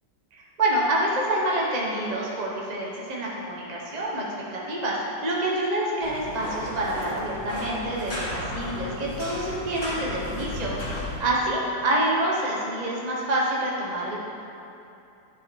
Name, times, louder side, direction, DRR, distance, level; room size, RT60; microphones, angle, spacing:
voice 1, 0.3-4.3 4.5-14.2, right 1 dB, 30° right, -4 dB, 0.8 m, -27 dB
sound 1, 6.0-11.2, left 1 dB, 30° left, 2.4 m, -34 dB
11.0 x 4.8 x 4.6 m, 2.8 s
omnidirectional pair, 2.1 m